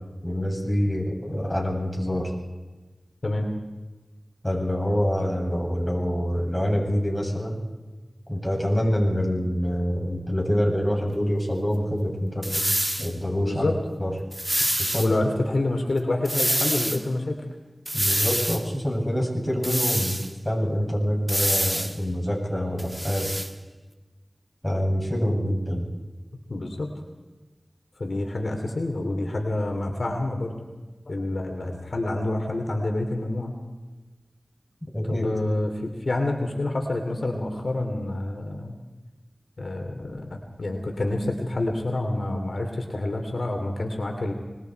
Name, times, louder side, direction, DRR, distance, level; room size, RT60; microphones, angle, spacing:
voice 1, 0.2-2.3 4.4-7.6 8.3-12.6 13.0-13.7 14.0-14.1 14.8-15.2 17.9-23.4 24.6-25.8 34.8-35.3, equal, 10° left, -1 dB, 7.8 m, -26 dB
sound 1, 12.4-13.1 14.3-15.1 16.3-17.0 17.9-18.6 19.6-20.3 21.3-22.0 22.8-23.5, equal, 15° right, 1.8 m, -26 dB
voice 2, 13.4-13.8 15.0-17.4 26.5-26.9 28.0-30.6 31.1-33.5 35.0-38.7 39.6-44.3, left 2 dB, 70° left, 3 dB, 2.9 m, -27 dB
25.5 x 22.0 x 4.7 m, 1.2 s
cardioid pair, 40°, 0 cm